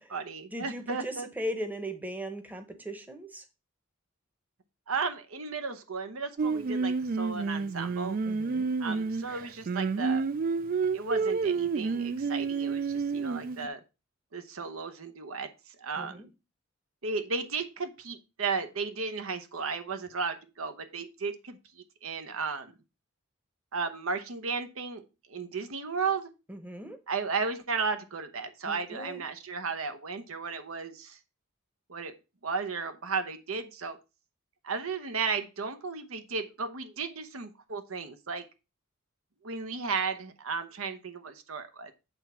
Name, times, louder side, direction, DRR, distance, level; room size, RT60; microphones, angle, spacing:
voice 1, 0.0-1.3 4.9-8.2 8.8-10.2 10.9-13.8 14.3-15.5 15.8-16.2 17.0-22.7 23.7-25.0 25.3-26.3 27.1-31.2 31.9-32.1 32.4-34.0 34.6-38.5 39.4-41.9, right 5 dB, 80° right, 10 dB, 0.9 m, -34 dB
voice 2, 0.5-3.4 8.2-8.7 16.0-16.3 26.5-27.0 28.6-29.2, equal, 10° right, 7 dB, 0.9 m, -38 dB
Singing, 6.4-13.7, right 4 dB, 40° right, 0.3 m, -29 dB
8.1 x 3.5 x 5.6 m, 0.28 s
head